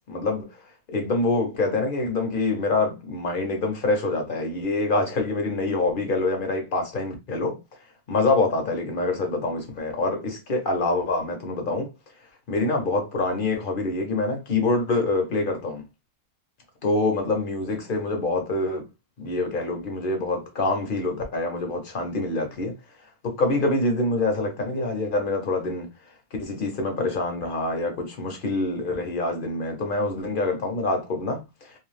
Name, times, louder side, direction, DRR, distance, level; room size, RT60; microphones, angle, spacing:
voice 1, 0.1-0.5 0.9-7.6 8.1-11.9 12.5-15.8 16.8-18.8 19.2-22.8 23.2-25.9 26.4-31.7, left 2 dB, 45° left, 0.8 m, -25 dB
2.6 x 2.2 x 3.2 m
omnidirectional pair, 1.5 m